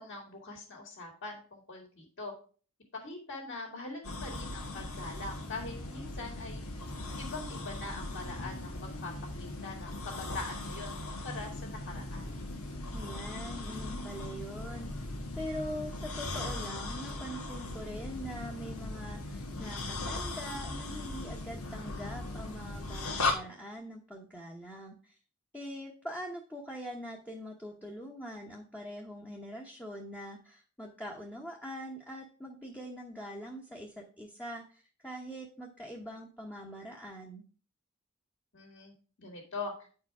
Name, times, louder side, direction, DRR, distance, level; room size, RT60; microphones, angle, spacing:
voice 1, 0.0-2.3 2.9-6.6 7.2-9.1 9.4-12.3 38.5-38.9 39.2-39.9, left 3 dB, 55° left, 1 dB, 2.2 m, -43 dB
sound 1, 4.0-23.3, left 2 dB, 90° left, 1.6 m, -38 dB
voice 2, 12.9-25.2 25.5-37.4, equal, 10° left, -2 dB, 1.0 m, -43 dB
9.3 x 4.7 x 4.8 m, 0.40 s
head